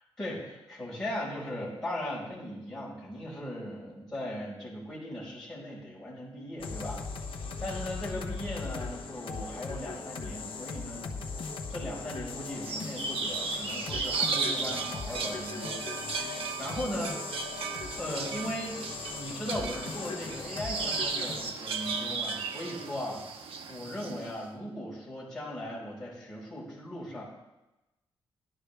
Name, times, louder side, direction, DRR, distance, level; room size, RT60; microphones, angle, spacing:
voice 1, 0.2-7.0 7.6-11.2 11.7-15.8 16.2-17.1 17.6-23.2 23.7-27.2, left 1 dB, 5° left, -7 dB, 5.4 m, -38 dB
sound 1, 6.6-21.5, left 4 dB, 65° left, 1.1 m, -39 dB
sound 2, 12.6-24.3, right 4 dB, 75° right, 1.1 m, -35 dB
17.5 x 12.0 x 3.5 m, 1.0 s
wide cardioid pair, 155°, 9 cm